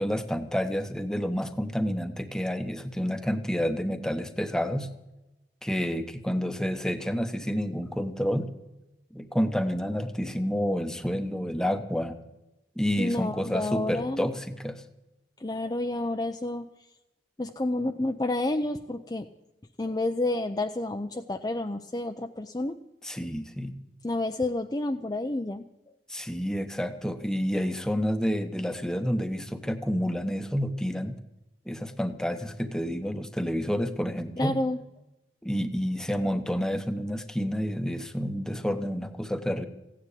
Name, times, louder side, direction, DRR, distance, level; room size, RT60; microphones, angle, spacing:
voice 1, 0.0-4.9 5.6-8.5 9.1-12.2 12.8-14.8 23.0-23.7 26.1-31.2 31.7-34.6 35.4-39.7, equal, 5° left, 8 dB, 0.9 m, -29 dB
voice 2, 13.0-14.3 15.4-16.6 17.4-19.3 19.8-22.8 24.0-25.6 34.4-34.8, left 2 dB, 20° left, 5 dB, 0.5 m, -29 dB
16.0 x 9.8 x 8.5 m, 0.98 s
head